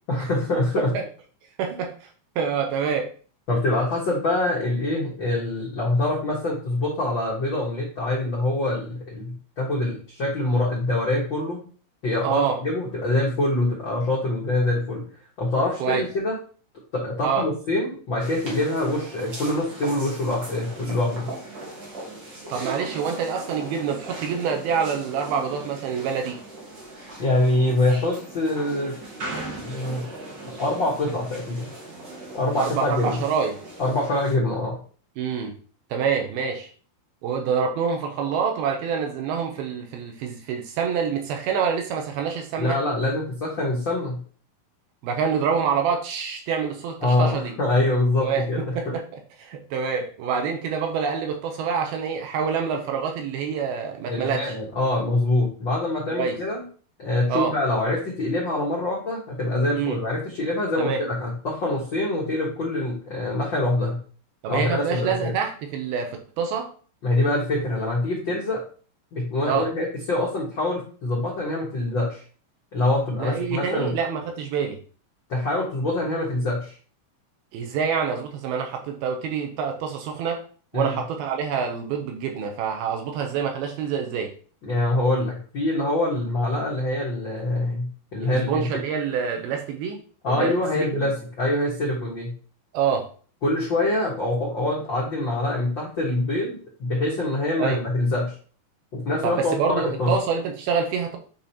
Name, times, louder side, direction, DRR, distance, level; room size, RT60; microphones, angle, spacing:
voice 1, 0.1-0.9 1.7-1.8 3.5-11.6 12.0-15.0 15.4-16.4 16.9-21.3 27.2-28.9 29.6-30.0 30.6-31.7 32.3-33.2 33.8-34.8 42.6-44.2 47.0-48.9 54.1-56.6 57.0-64.0 64.5-65.3 67.0-68.6 69.1-72.2 72.7-73.9 75.3-76.7 80.7-80.9 84.6-88.7 90.2-92.3 93.4-98.3 98.9-100.1, left 2 dB, 75° left, -4 dB, 1.1 m, -25 dB
voice 2, 1.6-2.1 2.4-3.1 12.2-12.6 15.8-16.0 17.2-17.4 22.5-26.4 32.6-33.6 35.2-35.5 35.9-36.7 37.2-42.8 45.0-47.5 48.2-48.4 48.8-49.0 49.4-54.5 56.1-56.4 57.3-57.5 59.7-60.0 60.8-61.0 64.4-66.7 69.5-69.7 73.2-74.8 77.5-80.4 80.7-84.3 88.2-90.0 90.3-91.1 92.7-93.1 97.6-97.8 99.2-101.2, right 6 dB, 80° right, 4 dB, 2.5 m, -26 dB
sound 1, 18.2-34.3, right 2 dB, 55° right, 1.3 m, -38 dB
8.6 x 4.3 x 2.9 m, 0.42 s
omnidirectional pair, 4.6 m